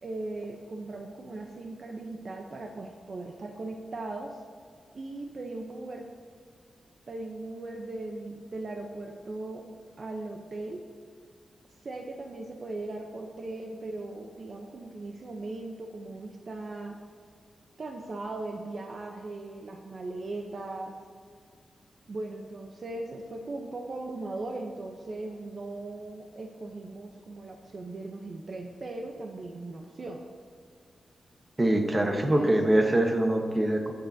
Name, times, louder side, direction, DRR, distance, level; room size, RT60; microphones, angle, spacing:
voice 1, 0.0-4.4 4.9-6.1 7.1-9.6 10.0-10.8 11.8-17.0 17.8-20.9 22.1-30.2 31.7-32.5, right 2 dB, 45° right, 2 dB, 0.7 m, -38 dB
voice 2, 31.6-33.9, right 1 dB, 20° right, 3 dB, 1.1 m, -24 dB
19.5 x 6.7 x 2.7 m, 2.1 s
wide cardioid pair, 150°, 0 cm